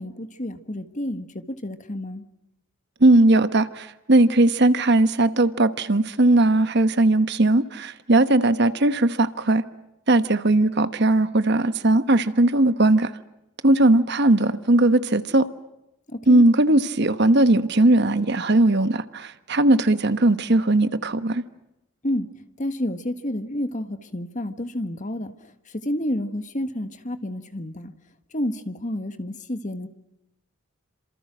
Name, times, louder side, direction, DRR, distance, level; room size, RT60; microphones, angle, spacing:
voice 1, 0.0-2.2 16.1-16.4 22.0-22.3 22.6-25.3 25.7-27.9 28.3-29.9, left 1 dB, 35° left, 1.5 m, -30 dB
voice 2, 3.0-9.6 10.1-13.1 13.6-15.5 16.3-21.4, right 2 dB, 50° right, 1.1 m, -18 dB
28.5 x 26.5 x 6.2 m
head